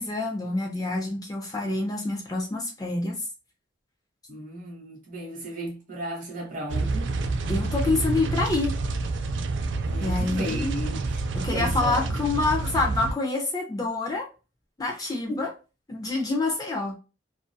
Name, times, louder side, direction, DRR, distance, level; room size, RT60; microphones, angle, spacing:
voice 1, 0.0-3.2 7.5-8.8 10.0-10.7 11.3-14.3 14.8-15.5 15.9-17.0, left 3 dB, 20° left, 0.5 m, -27 dB
voice 2, 4.3-7.1 9.8-11.2 11.5-12.2 14.9-15.0 15.3-15.5, right 1 dB, 45° right, 1.1 m, -35 dB
sound 1, 6.7-13.1, right 3 dB, 65° right, 0.3 m, -28 dB
2.6 x 2.4 x 2.2 m
head